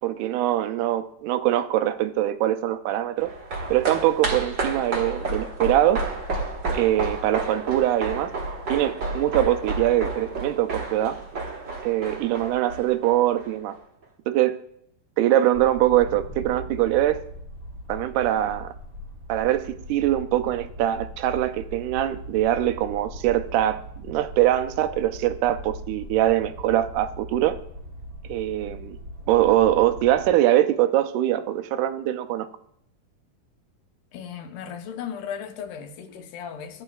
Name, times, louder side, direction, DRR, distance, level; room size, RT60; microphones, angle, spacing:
voice 1, 0.0-3.3 3.7-6.1 6.7-8.3 8.7-11.2 11.8-13.8 14.3-14.6 15.2-17.2 17.9-18.7 19.3-27.6 28.3-29.0 29.3-32.5, right 13 dB, 80° right, 2.0 m, -23 dB
sound 1, 3.2-13.8 14.0-14.1, right 2 dB, 50° right, 1.3 m, -31 dB
sound 2, 15.5-30.3, equal, 35° right, 1.4 m, -40 dB
voice 2, 34.1-36.8, left 7 dB, 75° left, 2.3 m, -36 dB
16.0 x 8.7 x 2.3 m
omnidirectional pair, 3.9 m